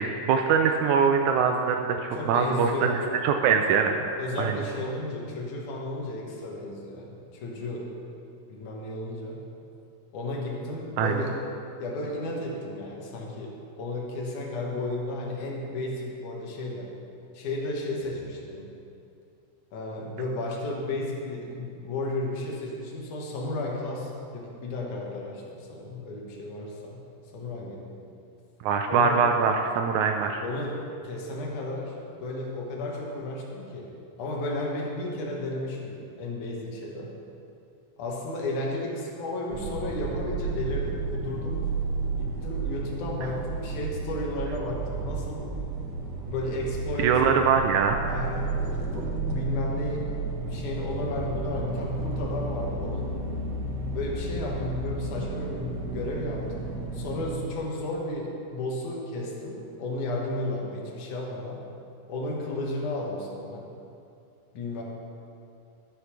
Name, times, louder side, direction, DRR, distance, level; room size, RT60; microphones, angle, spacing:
voice 1, 0.0-4.1 4.4-4.6 11.0-11.1 28.6-30.4 47.0-48.0, right 6 dB, 80° right, 4 dB, 2.0 m, -23 dB
voice 2, 2.1-3.0 4.2-7.9 8.5-9.4 10.1-11.4 11.8-16.9 17.3-18.7 19.7-27.0 27.3-27.9 28.9-29.2 30.4-31.9 32.2-33.9 34.2-37.1 38.0-41.6 42.1-45.5 46.3-47.2 48.1-50.1 50.5-53.1 53.9-61.6 62.1-63.7 64.5-64.8, left 1 dB, 80° left, -2 dB, 2.9 m, -33 dB
sound 1, 39.5-57.4, right 3 dB, 60° right, 1.1 m, -32 dB
12.5 x 6.6 x 5.9 m, 2.6 s
omnidirectional pair, 3.4 m